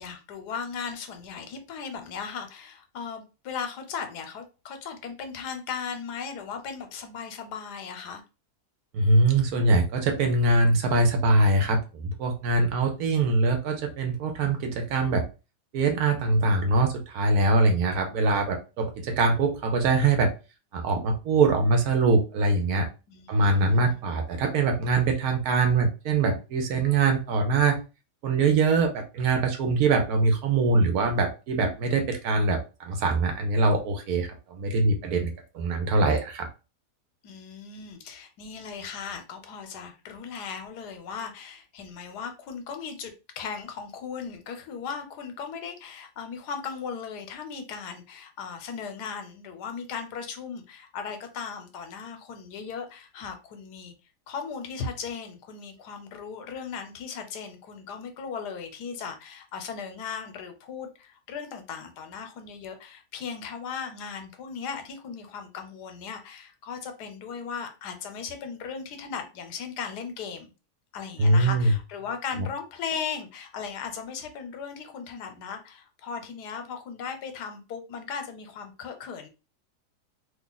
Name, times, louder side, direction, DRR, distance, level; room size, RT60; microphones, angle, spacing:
voice 1, 0.0-8.2 23.1-24.0 37.2-53.9 54.3-70.5 70.9-79.3, left 6 dB, 80° left, 6 dB, 1.2 m, -37 dB
voice 2, 8.9-15.2 15.7-20.3 20.7-22.9 23.3-27.8 28.2-36.5 71.2-71.7 72.4-72.5, right 3 dB, 70° right, 5 dB, 1.1 m, -23 dB
2.9 x 2.4 x 3.8 m, 0.31 s
omnidirectional pair, 1.7 m